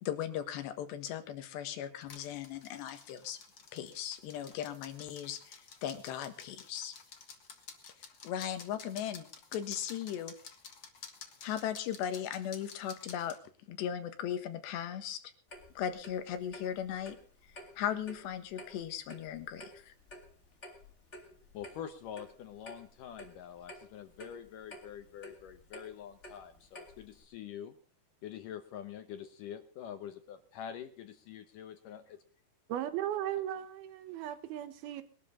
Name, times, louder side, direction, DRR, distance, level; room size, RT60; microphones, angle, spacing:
voice 1, 0.0-3.4 3.7-7.0 8.2-9.3 9.5-10.3 11.4-13.4 13.7-15.2 15.8-17.2 17.8-19.9, left 10 dB, 90° left, 3.7 m, -37 dB
sound 1, 2.0-13.4, left 6 dB, 55° left, 1.3 m, -52 dB
Clock, 15.5-27.2, equal, 20° left, 2.1 m, -52 dB
voice 2, 21.5-27.7 28.2-32.2, left 9 dB, 75° left, 2.1 m, -45 dB
voice 3, 32.7-35.0, right 11 dB, 75° right, 2.8 m, -36 dB
21.0 x 12.0 x 3.7 m
omnidirectional pair, 4.8 m